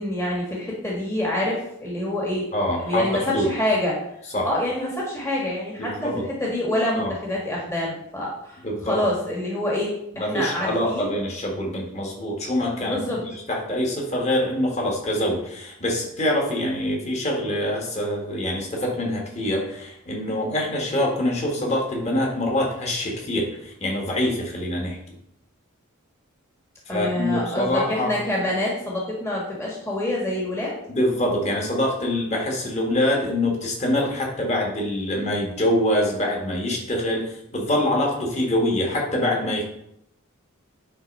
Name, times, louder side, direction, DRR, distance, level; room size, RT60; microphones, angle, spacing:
voice 1, 0.0-4.0 4.4-5.9 6.4-11.1 12.8-13.2 26.9-30.7, left 1 dB, 10° left, -4 dB, 1.5 m, -26 dB
voice 2, 2.5-3.5 4.3-4.5 5.8-6.2 6.9-7.1 8.6-9.0 10.2-13.2 13.5-25.0 26.9-28.2 30.9-39.6, left 1 dB, 30° left, -1 dB, 1.8 m, -25 dB
9.5 x 3.8 x 5.4 m, 0.78 s
head